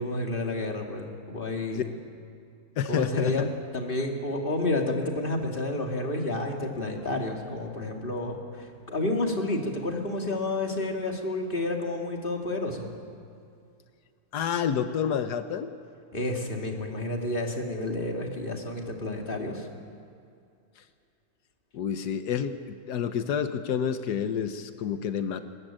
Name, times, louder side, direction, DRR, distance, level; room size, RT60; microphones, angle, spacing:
voice 1, 0.0-1.9 2.9-12.9 16.1-19.7, left 2 dB, 35° left, 2 dB, 2.6 m, -30 dB
voice 2, 2.8-3.5 14.3-15.7 21.7-25.4, left 8 dB, 90° left, 9 dB, 1.5 m, -29 dB
22.0 x 21.0 x 8.8 m, 2.5 s
omnidirectional pair, 1.7 m